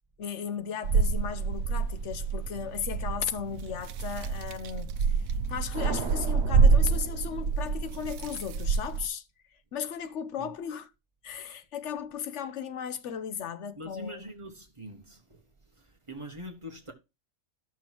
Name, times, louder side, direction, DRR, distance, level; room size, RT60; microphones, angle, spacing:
voice 1, 0.2-9.2 9.7-10.9 11.2-14.2, left 8 dB, 65° left, 1.0 m, -36 dB
sound 1, 0.8-9.1, right 5 dB, 85° right, 1.0 m, -27 dB
sound 2, 5.7-8.0, right 5 dB, 60° right, 1.0 m, -39 dB
voice 2, 13.8-15.4 15.8-16.9, equal, 25° right, 1.5 m, -43 dB
12.5 x 6.1 x 2.9 m
omnidirectional pair, 1.4 m